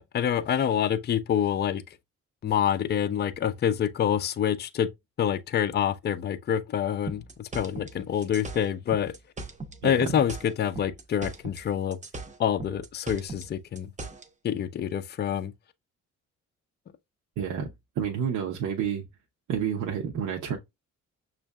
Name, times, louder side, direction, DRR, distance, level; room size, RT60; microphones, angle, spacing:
voice 1, 0.0-1.8 2.4-4.9 5.2-9.1 9.8-12.0 12.4-13.9 14.4-15.5, left 9 dB, 35° left, 0.4 m, -27 dB
sound 1, 7.1-9.8 10.1-11.7 11.9-14.3, right 2 dB, 25° right, 0.7 m, -39 dB
voice 2, 9.8-10.2 17.4-17.7 18.0-19.0 19.5-20.6, right 8 dB, 80° right, 0.8 m, -29 dB
6.2 x 2.5 x 2.2 m
cardioid pair, 90°, 30 cm